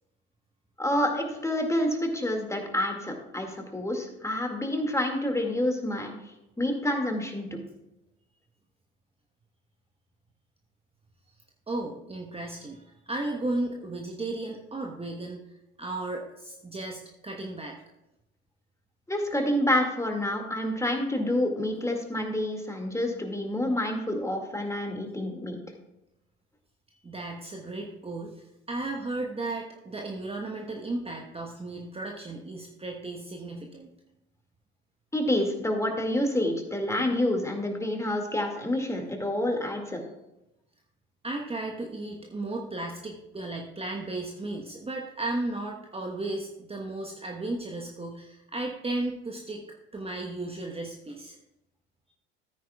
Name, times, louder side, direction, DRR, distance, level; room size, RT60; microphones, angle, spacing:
voice 1, 0.8-6.1 6.6-7.6 19.1-25.6 35.1-40.0, left 1 dB, 10° left, 3 dB, 2.1 m, -28 dB
voice 2, 11.7-15.4 15.8-17.7 27.0-33.9 41.2-49.6 49.9-51.4, right 2 dB, 20° right, 0 dB, 1.2 m, -35 dB
14.0 x 9.2 x 2.4 m, 0.90 s
hypercardioid pair, 65°, 32 cm